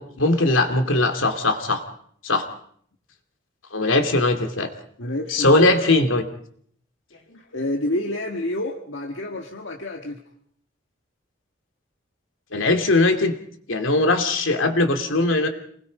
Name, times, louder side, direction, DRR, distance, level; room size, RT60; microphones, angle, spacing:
voice 1, 0.0-1.8 2.2-2.5 3.7-4.7 5.3-6.3 7.3-7.4 12.5-13.3 13.7-15.5, left 2 dB, 85° left, 6 dB, 2.6 m, -20 dB
voice 2, 5.0-5.6 7.3-10.2, left 1 dB, 70° left, 2 dB, 1.7 m, -28 dB
28.0 x 20.5 x 5.3 m, 0.62 s
head